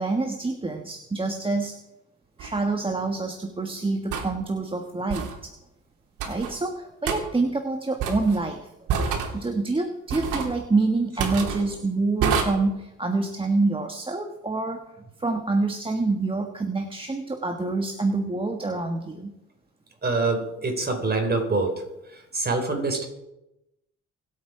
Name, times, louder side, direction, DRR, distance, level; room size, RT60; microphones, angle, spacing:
voice 1, 0.0-1.8 2.4-5.5 6.2-8.7 9.3-19.3, right 3 dB, 15° right, 4 dB, 1.5 m, -27 dB
sound 1, 2.4-2.5 4.1-4.3 5.1-5.4 6.2-6.5 7.1-7.2 8.0-8.4 8.9-9.3 10.1-10.5 11.2-11.6 12.2-12.4, right 6 dB, 90° right, 3.1 m, -26 dB
voice 2, 20.0-21.8 22.3-23.1, right 3 dB, 30° right, 3 dB, 4.6 m, -25 dB
25.0 x 8.6 x 4.9 m, 0.90 s
cardioid pair, 90°, 30 cm